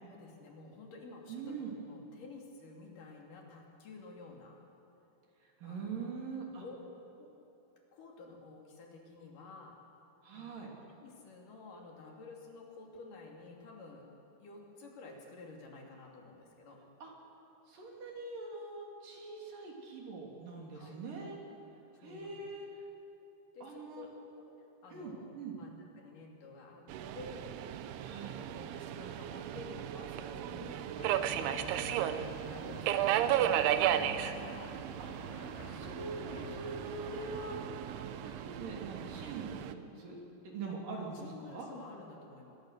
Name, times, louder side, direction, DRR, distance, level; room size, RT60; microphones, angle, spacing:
voice 1, 0.1-4.6 5.6-6.2 6.6-6.8 7.2-7.3 7.9-9.8 10.3-10.6 11.0-14.0 14.4-16.8 20.7-21.0 21.9-22.5 23.5-26.9 27.1-27.6 28.1-30.9 31.2-32.2 32.4-34.1 41.1-42.6, left 3 dB, 55° left, 0 dB, 4.0 m, -52 dB
voice 2, 1.3-1.7 5.6-6.6 10.2-10.7 17.0-17.1 17.7-21.4 22.0-22.7 23.6-24.1 24.9-25.6 28.0-28.4 35.0-35.2 35.7-40.2 40.4-41.7, right 4 dB, 55° right, -1 dB, 4.6 m, -43 dB
Subway metro underground, 26.9-39.7, right 11 dB, 80° right, 2.7 m, -35 dB
sound 1, 31.0-37.7, left 12 dB, 80° left, 2.7 m, -52 dB
23.5 x 21.5 x 6.6 m, 2.9 s
omnidirectional pair, 4.7 m